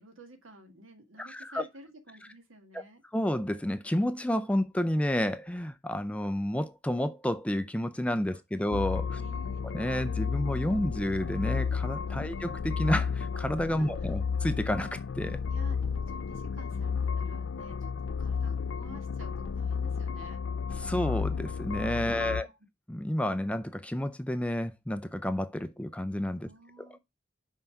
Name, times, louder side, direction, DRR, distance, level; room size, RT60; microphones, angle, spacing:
voice 1, 0.0-3.0 8.3-8.4 9.1-9.7 12.1-12.3 13.8-14.1 15.5-20.4 22.1-22.5 26.4-27.0, right 1 dB, 80° right, 1.7 m, -52 dB
voice 2, 1.2-1.6 2.7-2.8 3.1-9.2 9.7-15.4 20.8-22.5 22.9-26.5, left 1 dB, 5° left, 0.4 m, -30 dB
sound 1, 8.7-22.4, left 6 dB, 65° left, 0.4 m, -32 dB
5.6 x 5.4 x 5.8 m
head